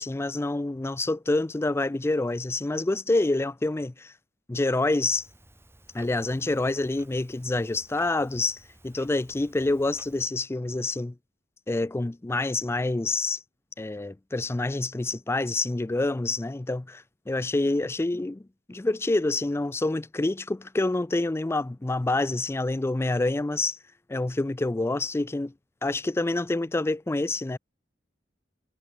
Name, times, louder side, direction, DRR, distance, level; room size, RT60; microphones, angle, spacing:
voice 1, 0.0-4.1 4.5-5.3 5.9-11.1 11.7-13.4 13.8-18.4 18.7-23.8 24.1-25.5 25.8-27.6, left 2 dB, 15° left, 0.4 m, -27 dB
Clock, 5.1-10.3, right 1 dB, 15° right, 5.9 m, -55 dB
head